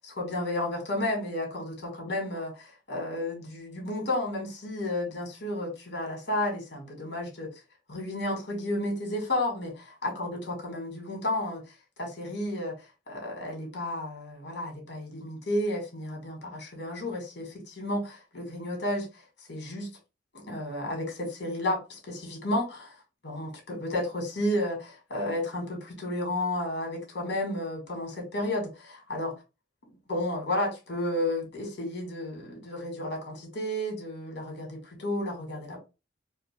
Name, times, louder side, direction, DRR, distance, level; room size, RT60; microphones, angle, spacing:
voice 1, 0.0-7.5 7.9-11.6 12.0-12.7 13.1-19.1 19.5-19.9 20.3-22.9 23.2-29.3 30.1-35.8, left 1 dB, 65° left, 2.0 m, -32 dB
4.5 x 2.2 x 3.2 m
head